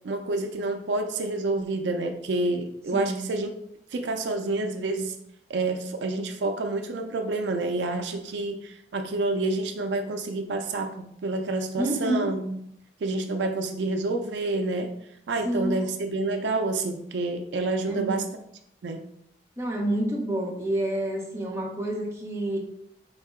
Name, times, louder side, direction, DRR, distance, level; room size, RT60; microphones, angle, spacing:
voice 1, 0.0-3.5 3.9-5.2 5.5-12.6 13.0-14.9 15.3-18.2 18.8-19.0, right 2 dB, 70° right, 6 dB, 0.4 m, -28 dB
voice 2, 11.8-12.3 15.4-15.9 17.9-18.2 19.6-22.6, right 1 dB, 15° right, -1 dB, 0.7 m, -28 dB
3.8 x 2.7 x 3.6 m, 0.74 s
head